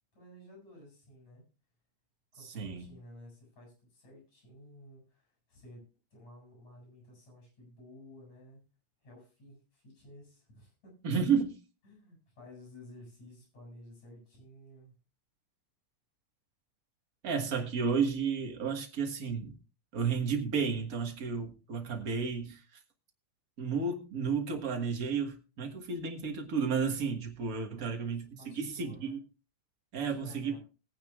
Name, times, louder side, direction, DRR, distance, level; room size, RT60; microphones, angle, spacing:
voice 1, 0.2-1.5 2.3-8.6 9.0-11.0 11.8-14.9 28.4-29.2 30.0-30.6, left 1 dB, 65° left, -1 dB, 8.7 m, -54 dB
voice 2, 2.4-2.9 11.0-11.6 17.2-19.6 19.9-22.8 23.6-29.2 29.9-30.5, right 5 dB, 40° right, 4 dB, 1.3 m, -32 dB
20.5 x 9.2 x 2.4 m, 0.32 s
omnidirectional pair, 3.4 m